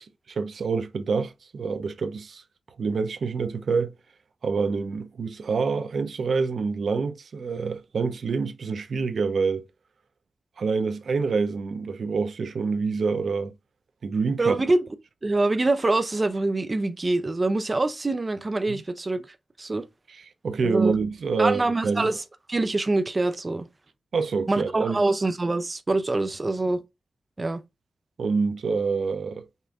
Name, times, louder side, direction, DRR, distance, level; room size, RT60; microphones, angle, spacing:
voice 1, 0.0-2.4 2.8-3.9 4.4-9.6 10.6-13.5 14.0-14.6 18.7-18.8 20.1-22.1 24.1-25.0 28.2-29.4, right 4 dB, 80° right, 0.6 m, -27 dB
voice 2, 14.4-14.8 15.2-19.3 19.6-19.9 20.6-20.9 21.4-22.2 22.5-23.7 24.5-26.8 27.4-27.6, right 2 dB, 30° right, 0.6 m, -25 dB
5.5 x 2.6 x 3.5 m
wide cardioid pair, 95°, 0 cm